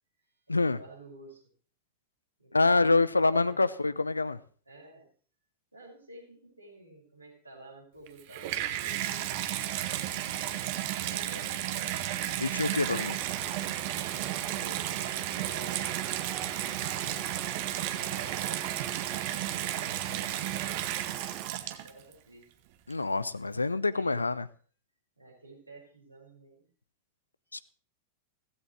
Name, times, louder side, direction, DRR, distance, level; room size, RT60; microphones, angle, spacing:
voice 1, 0.2-1.4 2.4-3.0 3.3-3.6 4.7-5.1 5.7-10.6 11.0-11.9 14.5-15.9 16.8-17.6 17.9-18.7 19.7-20.8 21.8-22.5 23.5-24.2 25.2-26.6, right 2 dB, 85° right, 5.8 m, -51 dB
voice 2, 2.5-4.4 12.4-13.2 22.9-24.4 27.5-27.6, left 3 dB, 80° left, 0.6 m, -26 dB
Water tap faucet / Bathtub (filling or washing), 8.1-22.1 22.9-23.0, right 13 dB, 50° right, 1.3 m, -33 dB
sound 1, 12.8-21.5, right 10 dB, 30° right, 0.9 m, -44 dB
16.0 x 15.5 x 3.3 m
figure-of-eight pair, 90°, 0 cm